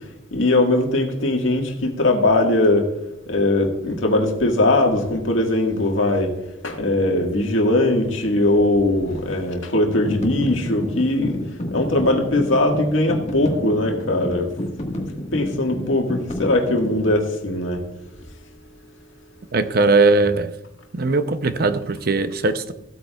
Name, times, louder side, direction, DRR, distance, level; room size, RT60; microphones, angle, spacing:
voice 1, 0.3-2.9 3.3-6.3 6.6-11.4 11.7-14.5 15.1-17.8 19.5-19.7, left 2 dB, 80° left, 1.7 m, -20 dB
sound 1, 9.9-17.2, left 1 dB, 35° left, 1.6 m, -30 dB
voice 2, 19.5-20.5 20.9-22.7, right 3 dB, 50° right, 0.6 m, -19 dB
15.5 x 8.6 x 2.3 m
head